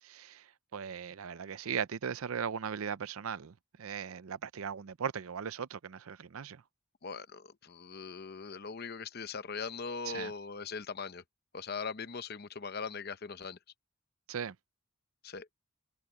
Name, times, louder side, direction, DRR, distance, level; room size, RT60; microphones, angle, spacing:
voice 1, 0.0-6.6 10.1-10.3 14.3-14.6, right 7 dB, 75° right, 0.5 m, -38 dB
voice 2, 7.0-11.2 11.5-13.6 15.2-15.5, left 5 dB, 45° left, 0.7 m, -40 dB
head